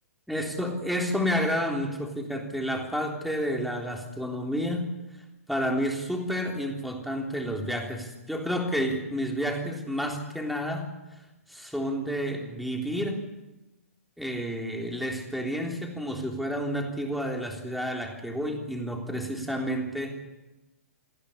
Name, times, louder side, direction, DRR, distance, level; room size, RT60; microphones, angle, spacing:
voice 1, 0.3-5.0 5.5-10.9 11.5-13.2 14.2-20.2, equal, ahead, 1 dB, 3.6 m, -30 dB
28.5 x 11.0 x 9.8 m, 1.0 s
hypercardioid pair, 125°, 8 cm